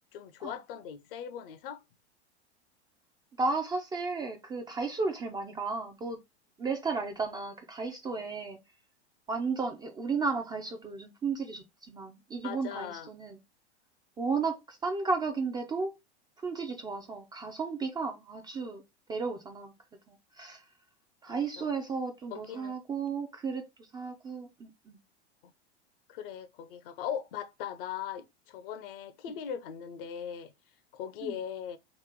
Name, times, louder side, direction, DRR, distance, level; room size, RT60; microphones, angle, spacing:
voice 1, 0.1-1.8 12.4-13.1 21.3-21.7 22.3-22.8 26.1-30.5 30.9-31.8, left 9 dB, 55° left, 0.6 m, -39 dB
voice 2, 3.4-6.2 6.6-8.6 9.3-13.4 14.2-15.9 16.4-18.8 19.1-19.7 20.1-20.7 21.2-25.0 31.2-31.4, right 4 dB, 15° right, 0.4 m, -34 dB
3.0 x 2.9 x 3.5 m
hypercardioid pair, 95°, 34 cm